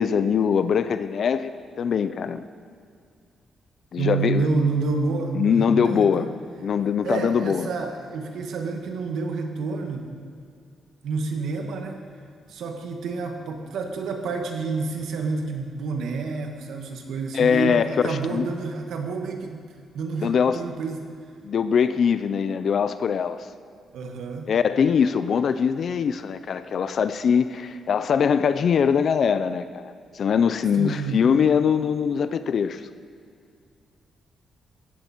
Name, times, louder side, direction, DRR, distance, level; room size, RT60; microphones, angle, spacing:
voice 1, 0.0-1.5 1.8-2.4 3.9-4.5 5.3-6.3 6.6-7.7 17.3-18.5 20.2-20.6 21.4-23.5 24.5-32.8, left 7 dB, 45° left, 12 dB, 0.4 m, -22 dB
voice 2, 4.0-6.3 7.0-10.1 11.0-12.0 12.5-19.6 19.9-21.1 23.9-24.5 30.8-31.3, right 4 dB, 80° right, 3 dB, 1.9 m, -29 dB
16.0 x 15.0 x 4.5 m, 2.3 s
wide cardioid pair, 175°, 0 cm